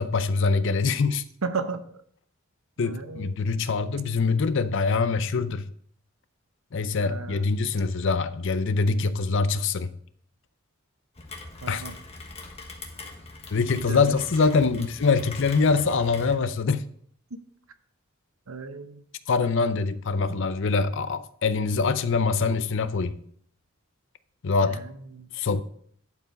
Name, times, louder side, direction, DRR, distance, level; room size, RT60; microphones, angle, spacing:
voice 1, 0.0-1.2 2.8-5.6 6.7-9.9 11.7-11.8 13.5-16.8 19.3-23.2 24.4-24.8 25.3-25.6, left 4 dB, 60° left, 0.5 m, -24 dB
voice 2, 1.4-1.8 2.8-3.4 7.0-7.6 11.6-11.9 13.7-14.2 16.3-16.4 17.3-17.4 18.5-19.0 20.3-20.4 24.6-25.3, right 4 dB, 85° right, 0.8 m, -35 dB
Rain, 11.1-16.3, left 3 dB, 30° left, 1.3 m, -42 dB
11.0 x 4.7 x 5.2 m
head